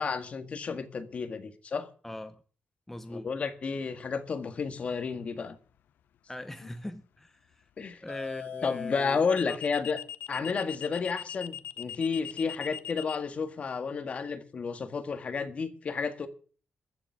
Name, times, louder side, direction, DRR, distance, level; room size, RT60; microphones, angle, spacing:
voice 1, 0.0-1.9 3.1-5.6 7.8-8.0 8.6-10.0 10.3-16.3, left 5 dB, 45° left, 1.8 m, -31 dB
voice 2, 2.0-2.4 2.9-3.3 6.3-7.7 8.0-9.6, left 1 dB, 10° left, 0.9 m, -41 dB
sound 1, 4.8-5.1 8.1-13.2, left 10 dB, 85° left, 0.6 m, -40 dB
14.0 x 7.2 x 9.6 m
wide cardioid pair, 135°, 3 cm